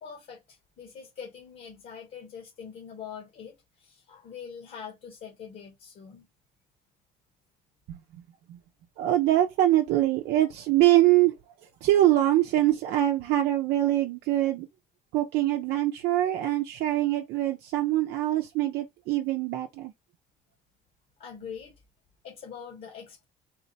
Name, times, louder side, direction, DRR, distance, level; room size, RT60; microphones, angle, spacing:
voice 1, 0.0-6.3 21.2-21.7 22.2-23.3, left 7 dB, 60° left, 1.4 m, -43 dB
voice 2, 7.9-8.2 8.5-8.6 9.0-11.3 11.8-14.7 15.1-19.9, right 14 dB, 85° right, 0.6 m, -24 dB
3.8 x 2.2 x 4.0 m
cardioid pair, 110°, 17 cm